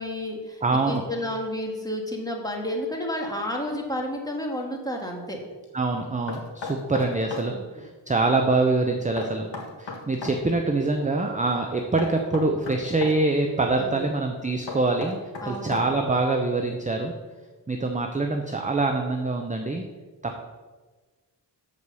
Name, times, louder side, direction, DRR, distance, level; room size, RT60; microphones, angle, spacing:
voice 1, 0.0-5.4 7.5-7.7 13.7-14.1 15.4-16.1, left 1 dB, 10° left, 0 dB, 1.7 m, -31 dB
voice 2, 0.6-1.0 5.7-9.5 9.8-15.2 15.5-17.1 17.7-19.8 20.2-20.4, right 3 dB, 15° right, 3 dB, 0.6 m, -25 dB
Knock, 6.3-7.5 9.2-10.4 12.0-13.2 14.7-16.1, left 3 dB, 75° left, 1.7 m, -35 dB
7.1 x 4.8 x 6.8 m, 1.3 s
wide cardioid pair, 85°, 44 cm